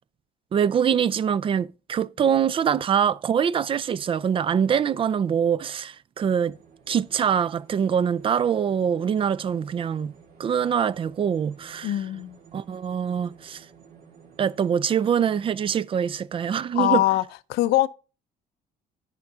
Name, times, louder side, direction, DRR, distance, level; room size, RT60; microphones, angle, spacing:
voice 1, 0.5-6.6 6.9-10.1 10.4-12.1 12.5-13.7 14.4-17.0, right 8 dB, 30° right, 0.3 m, -24 dB
sound 1, 6.3-15.8, right 6 dB, 60° right, 2.0 m, -52 dB
voice 2, 11.8-12.4 16.7-17.2 17.5-17.9, left 14 dB, 80° left, 0.5 m, -22 dB
10.5 x 5.0 x 3.6 m
cardioid pair, 110°, 17 cm